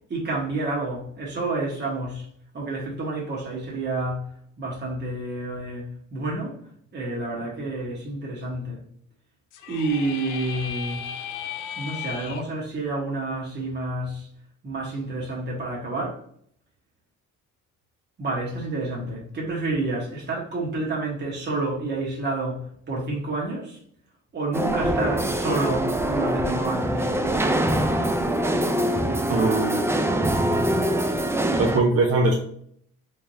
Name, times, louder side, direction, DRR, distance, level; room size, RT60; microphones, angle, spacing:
voice 1, 0.1-2.2 2.5-4.3 4.6-6.6 6.9-8.8 9.7-11.1 11.8-14.3 14.6-16.2 18.2-23.8 24.3-27.1, right 2 dB, 35° right, -4 dB, 1.2 m, -29 dB
sound 1, 9.5-12.4, left 8 dB, 75° left, 0.5 m, -35 dB
sound 2, 24.5-31.8, right 1 dB, 10° right, 0.4 m, -24 dB
voice 2, 29.3-29.9 31.0-31.1 31.6-32.4, right 2 dB, 50° right, 0 dB, 0.7 m, -21 dB
3.5 x 3.3 x 2.7 m, 0.63 s
cardioid pair, 90°, 31 cm